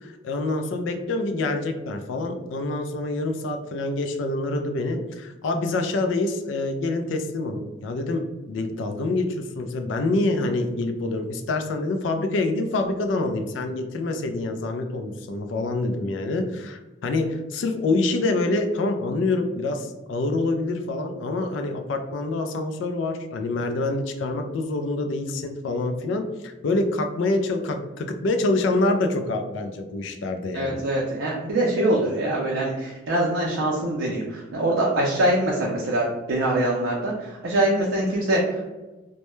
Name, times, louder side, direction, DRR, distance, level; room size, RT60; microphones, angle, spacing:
voice 1, 0.0-30.8, left 2 dB, 75° left, 6 dB, 0.3 m, -26 dB
voice 2, 30.5-38.7, right 1 dB, 75° right, -3 dB, 0.4 m, -24 dB
2.2 x 2.0 x 3.0 m, 1.1 s
head